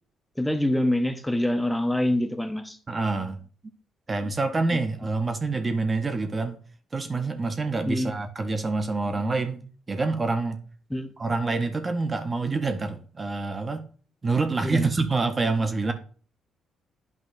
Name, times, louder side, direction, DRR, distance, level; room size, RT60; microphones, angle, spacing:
voice 1, 0.4-2.8 7.9-8.1 10.9-11.1 14.6-14.9, left 1 dB, 5° left, 0.8 m, -25 dB
voice 2, 2.9-3.4 4.1-6.6 6.9-9.6 9.9-10.6 11.2-13.9 14.2-15.9, right 3 dB, 30° right, 0.7 m, -26 dB
9.4 x 5.4 x 2.5 m
cardioid pair, 90°, 0 cm